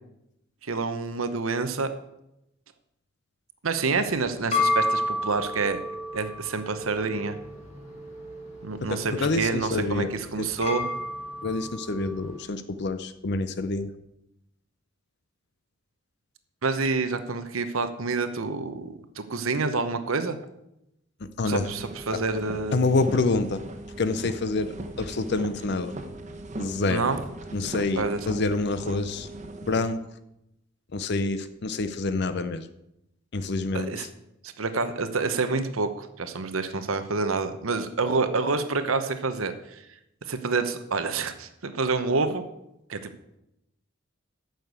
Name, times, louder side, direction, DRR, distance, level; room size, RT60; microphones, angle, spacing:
voice 1, 0.6-1.9 3.6-5.8 6.1-7.4 8.6-10.0 10.3-10.8 16.6-20.4 21.5-22.8 26.9-27.2 28.0-28.2 33.7-34.1 34.4-39.8 40.3-42.4 42.9-43.1, right 4 dB, 85° right, 9 dB, 0.9 m, -28 dB
sound 1, 3.9-12.4, left 2 dB, 35° left, 2.4 m, -32 dB
voice 2, 8.8-10.5 11.4-13.9 21.2-21.7 22.1-22.2 22.7-23.6 24.0-25.9 26.6-27.1 27.5-29.3 29.6-30.0 30.9-32.7 33.3-34.1, left 3 dB, 55° left, 11 dB, 0.6 m, -27 dB
sound 2, 21.5-29.9, right 1 dB, 35° right, 1.1 m, -39 dB
9.1 x 6.6 x 8.1 m, 0.85 s
head